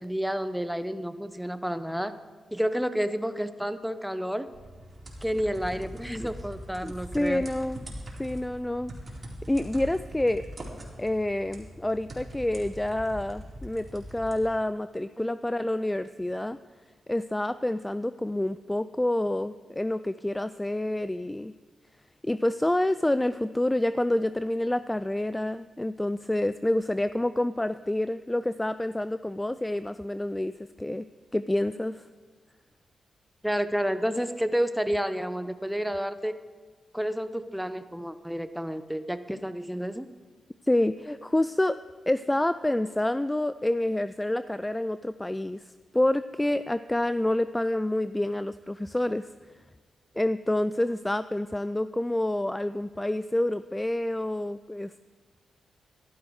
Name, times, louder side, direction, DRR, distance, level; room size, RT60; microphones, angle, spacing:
voice 1, 0.0-2.1 2.5-4.5 5.2-7.5 33.4-36.3 36.9-40.1, equal, ahead, 11 dB, 0.8 m, -30 dB
sound 1, 4.5-14.5, equal, 40° right, 4.0 m, -42 dB
voice 2, 6.8-7.8 8.2-8.9 9.5-10.4 11.0-16.6 17.1-21.5 22.2-30.5 30.8-31.1 31.3-32.0 40.6-41.8 42.1-49.3 50.2-55.0, left 1 dB, 15° left, 14 dB, 0.4 m, -28 dB
13.5 x 12.0 x 4.8 m, 1.5 s
cardioid pair, 55°, 0 cm